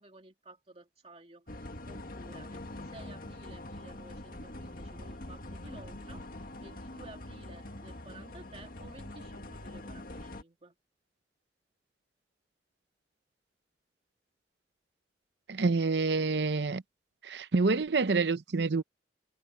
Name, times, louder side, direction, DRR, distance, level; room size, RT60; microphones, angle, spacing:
voice 1, 0.0-10.7, right 2 dB, 35° right, 2.7 m, -54 dB
sound 1, 1.5-10.4, left 1 dB, 55° left, 1.9 m, -44 dB
voice 2, 15.5-16.8 17.2-18.8, right 3 dB, 70° right, 0.7 m, -27 dB
head